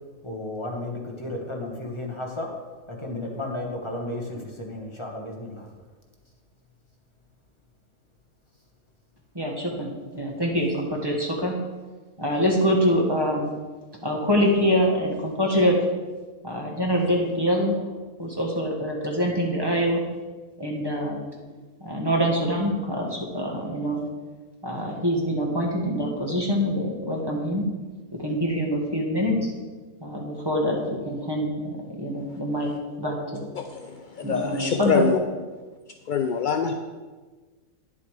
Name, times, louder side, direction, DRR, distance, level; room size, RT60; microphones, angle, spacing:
voice 1, 0.2-2.5 3.0-5.6, left 1 dB, 20° left, 0 dB, 1.3 m, -33 dB
voice 2, 9.3-11.6 12.2-13.5 14.0-15.8 16.4-17.9 18.2-20.0 20.6-21.2 21.8-24.0 24.6-27.6 28.1-29.5 30.0-32.7 33.0-33.5 34.2-35.0, equal, 20° right, -1 dB, 1.4 m, -25 dB
voice 3, 33.6-35.2 36.1-36.7, left 6 dB, 70° left, 5 dB, 0.4 m, -25 dB
9.6 x 7.2 x 4.8 m, 1.3 s
omnidirectional pair, 1.5 m